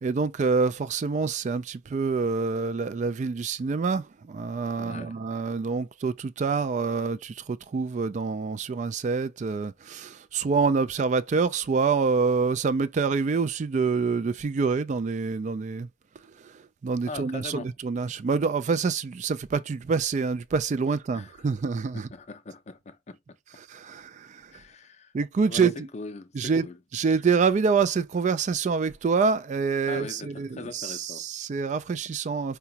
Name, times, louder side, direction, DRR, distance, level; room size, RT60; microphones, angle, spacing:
voice 1, 0.0-15.9 16.4-16.5 16.8-22.1 23.7-24.5 25.1-25.9 26.3-26.7 26.9-32.6, right 5 dB, 40° right, 0.3 m, -26 dB
voice 2, 4.8-5.2 17.1-17.7 21.1-21.3 21.9-23.2 24.5-25.1 25.4-26.8 29.8-31.3, left 3 dB, 40° left, 0.5 m, -41 dB
4.8 x 2.2 x 2.7 m
head